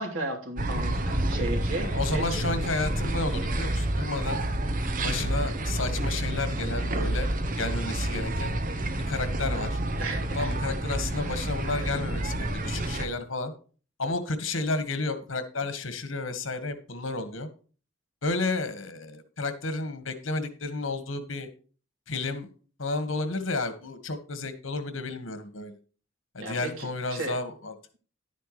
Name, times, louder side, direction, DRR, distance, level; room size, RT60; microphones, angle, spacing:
voice 1, 0.0-2.4 10.0-10.8 11.6-11.9 26.4-27.3, right 2 dB, 90° right, 2 dB, 3.1 m, -35 dB
sound 1, 0.6-13.1, right 1 dB, 45° right, 1.0 m, -29 dB
voice 2, 1.8-4.4 5.0-7.3 7.6-8.5 9.1-9.8 10.3-13.5 14.0-17.5 18.2-21.5 22.1-22.5 22.8-25.7 26.3-27.7, left 3 dB, 80° left, 10 dB, 1.7 m, -31 dB
11.5 x 9.3 x 3.2 m, 0.38 s
head